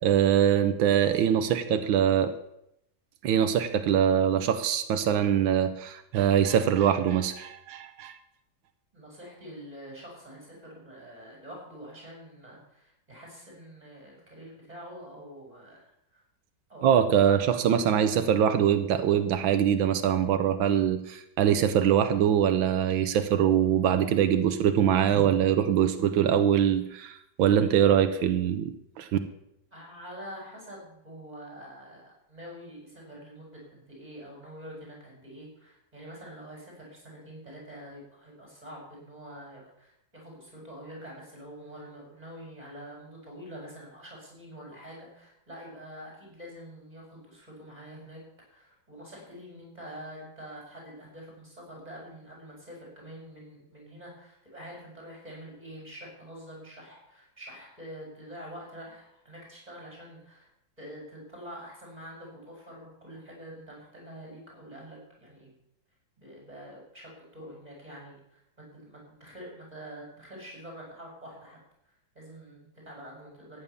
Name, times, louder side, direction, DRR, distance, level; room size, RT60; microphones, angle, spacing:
voice 1, 0.0-2.3 3.2-8.2 16.8-29.2, right 9 dB, 90° right, 9 dB, 1.7 m, -23 dB
voice 2, 8.9-16.2 16.7-17.5 29.7-48.2 48.5-60.5 60.8-65.5 66.2-68.4 68.7-71.6 72.1-73.6, equal, 20° right, -2 dB, 6.8 m, -46 dB
14.0 x 9.6 x 7.1 m, 0.78 s
omnidirectional pair, 2.1 m